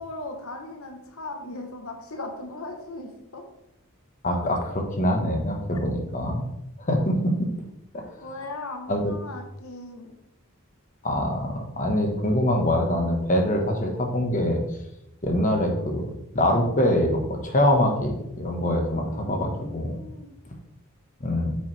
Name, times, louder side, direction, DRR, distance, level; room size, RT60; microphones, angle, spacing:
voice 1, 0.0-3.4 5.7-5.8 8.2-10.1 19.0-20.3, left 2 dB, 75° left, 3 dB, 1.2 m, -38 dB
voice 2, 4.2-6.5 6.8-7.5 7.9-8.1 8.9-9.0 11.0-14.6 15.2-16.1 16.3-20.0 21.2-21.6, left 1 dB, 35° left, 2 dB, 1.4 m, -24 dB
8.9 x 7.0 x 3.4 m, 0.85 s
head